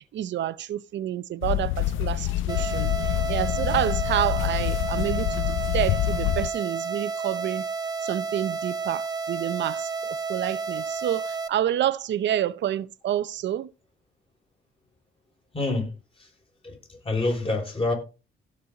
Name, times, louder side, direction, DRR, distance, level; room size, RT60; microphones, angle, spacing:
voice 1, 0.0-7.7 8.0-13.7, right 11 dB, 65° right, 0.7 m, -29 dB
sound 1, 1.4-6.5, left 15 dB, 85° left, 0.4 m, -26 dB
sound 2, 2.5-11.5, right 4 dB, 20° right, 1.2 m, -31 dB
voice 2, 15.5-15.9 16.2-16.3 16.6-17.9, left 2 dB, 25° left, 5.6 m, -27 dB
16.5 x 5.5 x 3.9 m
cardioid pair, 90°, 20 cm